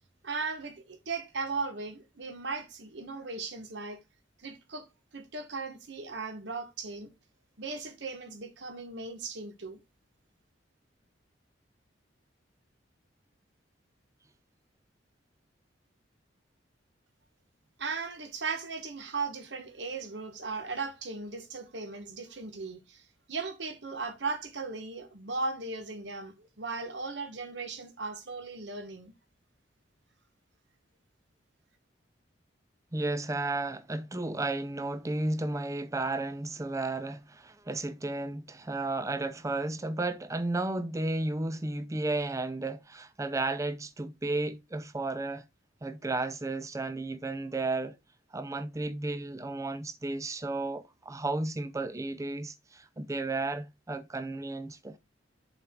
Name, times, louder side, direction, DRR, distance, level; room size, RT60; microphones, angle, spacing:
voice 1, 0.2-4.0 4.4-4.9 5.1-7.1 7.6-9.8 17.8-29.1, right 4 dB, 65° right, 1.2 m, -37 dB
voice 2, 32.9-45.4 45.8-47.9 48.3-55.0, right 2 dB, 15° right, 0.5 m, -33 dB
7.9 x 4.4 x 3.7 m
head